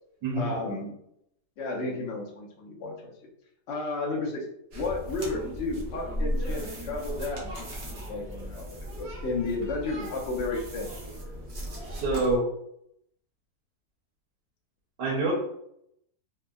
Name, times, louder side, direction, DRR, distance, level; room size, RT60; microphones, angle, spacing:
voice 1, 0.3-1.0 1.6-3.1 3.7-4.5 4.7-10.9, left 3 dB, 60° left, -1 dB, 0.7 m, -33 dB
sound 1, 4.7-12.4, equal, 60° right, 0.7 m, -36 dB
voice 2, 11.9-12.5 15.0-15.3, right 2 dB, 75° right, -4 dB, 1.3 m, -26 dB
3.4 x 2.0 x 2.3 m, 0.75 s
omnidirectional pair, 1.9 m